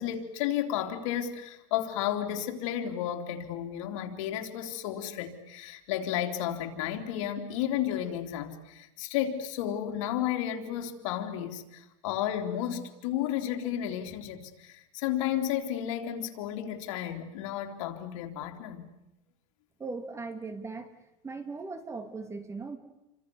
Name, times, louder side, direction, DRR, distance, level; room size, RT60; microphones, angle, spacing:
voice 1, 0.0-18.9, left 10 dB, 85° left, 4 dB, 3.6 m, -32 dB
voice 2, 19.8-20.9 21.2-22.8, right 4 dB, 15° right, 9 dB, 2.6 m, -38 dB
29.5 x 25.5 x 7.1 m, 0.93 s
cardioid pair, 150°, 16 cm